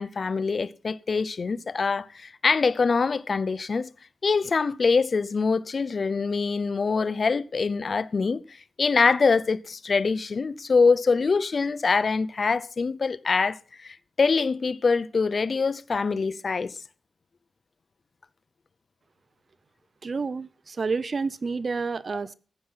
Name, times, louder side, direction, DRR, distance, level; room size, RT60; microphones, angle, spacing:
voice 1, 0.0-3.9 4.2-16.8, left 4 dB, 50° left, 0.6 m, -24 dB
voice 2, 20.0-22.3, right 4 dB, 50° right, 0.7 m, -29 dB
14.5 x 9.5 x 5.6 m
wide cardioid pair, 90°, 0 cm